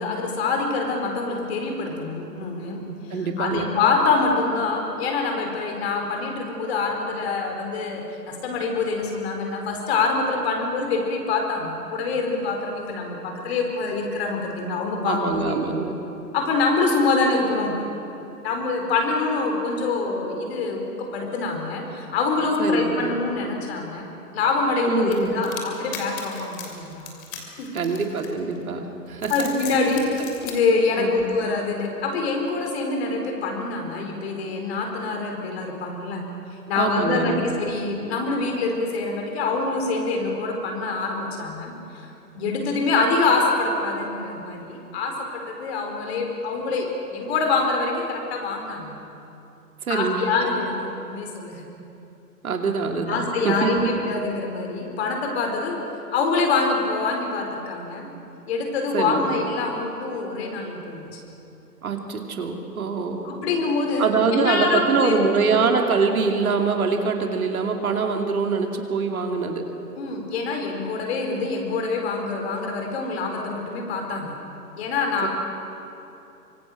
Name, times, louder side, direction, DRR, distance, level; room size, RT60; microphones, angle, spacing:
voice 1, 0.0-2.8 3.4-15.7 16.3-17.8 18.4-24.1 24.3-27.1 27.6-27.7 29.3-36.2 36.7-41.7 42.3-49.0 49.9-51.7 53.1-55.8 56.1-58.1 58.5-61.1 63.2-65.5 70.0-74.4 74.8-75.3, left 3 dB, 40° left, 2 dB, 4.4 m, -25 dB
voice 2, 3.1-3.7 15.0-16.0 22.6-23.2 24.9-25.3 27.7-29.8 31.0-31.2 36.8-37.5 49.8-50.3 52.4-53.9 58.9-59.4 61.8-63.3 64.0-69.6 75.2-75.3, right 5 dB, 60° right, 4 dB, 2.7 m, -24 dB
sound 1, 25.1-28.6 29.1-30.6, left 8 dB, 20° left, 3.0 m, -37 dB
25.0 x 24.0 x 6.3 m, 2.9 s
figure-of-eight pair, 130°, 48 cm